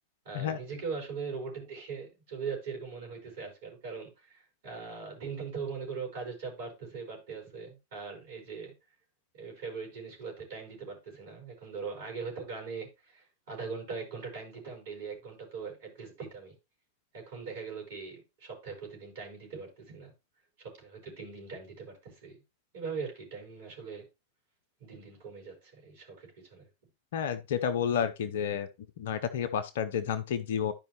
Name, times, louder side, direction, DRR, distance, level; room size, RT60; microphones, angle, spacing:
voice 1, 0.2-8.7 9.3-16.5 17.1-20.1 20.6-22.4 22.7-24.1 24.8-26.7, right 5 dB, 55° right, 4.9 m, -41 dB
voice 2, 27.1-28.7 29.0-30.7, left 8 dB, 55° left, 0.6 m, -30 dB
12.0 x 5.1 x 3.0 m
figure-of-eight pair, 90°, 0 cm